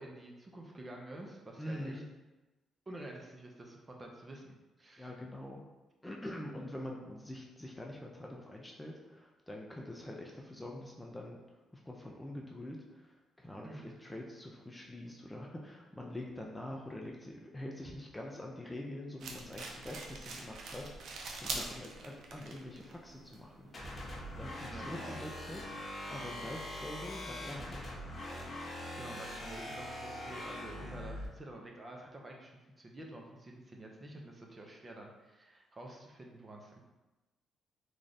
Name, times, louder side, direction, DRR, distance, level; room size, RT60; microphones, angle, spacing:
voice 1, 0.0-2.0 2.9-5.1 13.6-13.9 21.5-21.6 24.6-25.2 28.9-36.8, right 1 dB, 25° right, 0 dB, 0.6 m, -49 dB
voice 2, 1.6-2.0 5.0-5.6 6.0-11.4 11.7-23.7 24.4-25.8 26.1-28.0, left 1 dB, 10° left, -1 dB, 0.5 m, -45 dB
sound 1, 19.2-24.5, right 3 dB, 70° right, 0.5 m, -45 dB
sound 2, 23.7-31.3, left 1 dB, 35° left, 0.9 m, -42 dB
3.2 x 2.4 x 4.0 m, 1.1 s
cardioid pair, 90°, 0 cm